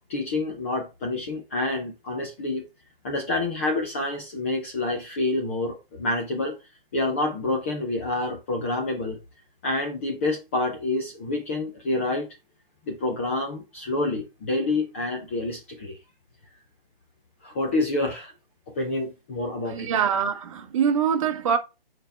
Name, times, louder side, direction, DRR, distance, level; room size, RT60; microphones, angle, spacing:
voice 1, 0.1-2.6 3.0-6.6 6.9-9.2 9.6-12.3 12.9-16.0 17.4-18.3 18.7-19.9, left 2 dB, 15° left, 0.5 m, -28 dB
voice 2, 19.7-21.6, right 7 dB, 35° right, 0.8 m, -24 dB
6.5 x 4.3 x 3.3 m
hypercardioid pair, 155°, 30 cm